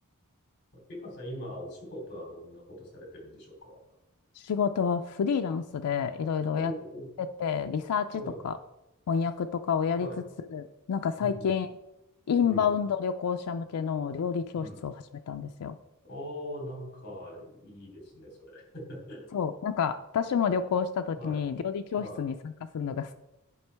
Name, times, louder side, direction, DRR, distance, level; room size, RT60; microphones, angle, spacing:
voice 1, 0.7-3.8 6.5-7.1 8.1-8.4 10.0-10.2 11.2-11.5 12.4-12.7 14.6-14.8 16.0-19.3 21.2-21.4 22.0-22.2, equal, 50° left, -1 dB, 2.8 m, -41 dB
voice 2, 4.4-6.7 7.2-8.5 9.1-10.1 10.5-11.7 12.3-14.9 15.3-15.8 19.3-23.1, left 7 dB, 90° left, 6 dB, 0.4 m, -29 dB
11.0 x 5.2 x 3.4 m, 0.96 s
head